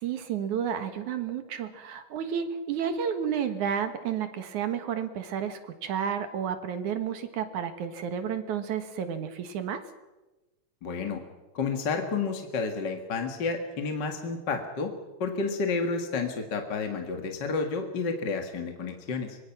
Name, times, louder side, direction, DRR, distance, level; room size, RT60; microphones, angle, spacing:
voice 1, 0.0-9.8, right 8 dB, 70° right, 8 dB, 2.8 m, -31 dB
voice 2, 10.8-11.2 11.5-14.9 15.2-19.4, left 4 dB, 40° left, 4 dB, 2.0 m, -30 dB
25.5 x 22.5 x 6.0 m, 1.1 s
omnidirectional pair, 3.8 m